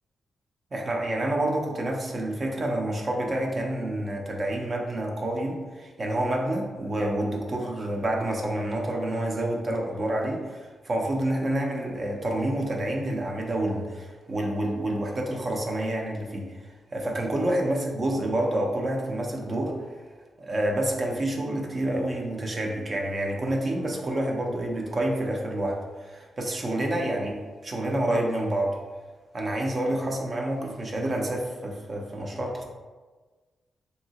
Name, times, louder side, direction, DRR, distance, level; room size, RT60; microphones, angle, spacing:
voice 1, 0.7-20.0 20.4-28.8 29.3-32.7, right 1 dB, 35° right, 0 dB, 0.5 m, -28 dB
3.0 x 2.7 x 2.8 m, 1.3 s
wide cardioid pair, 130°, 0 cm